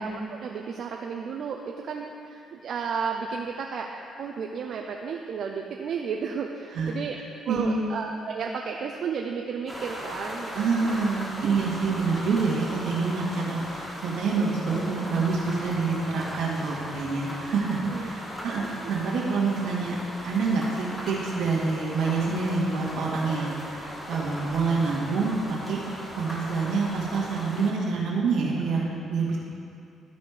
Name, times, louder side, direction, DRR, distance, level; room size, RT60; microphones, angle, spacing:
voice 1, 0.0-7.2 7.5-10.6 10.8-11.0 17.9-18.1 23.4-23.5, right 6 dB, 65° right, 1 dB, 0.5 m, -33 dB
voice 2, 7.5-7.8 10.5-20.0 20.2-25.8 26.2-29.4, right 4 dB, 85° right, -4 dB, 1.8 m, -27 dB
sound 1, 9.7-27.7, equal, 15° left, 1.9 m, -38 dB
12.5 x 4.3 x 4.9 m, 2.5 s
cardioid pair, 90°, 0 cm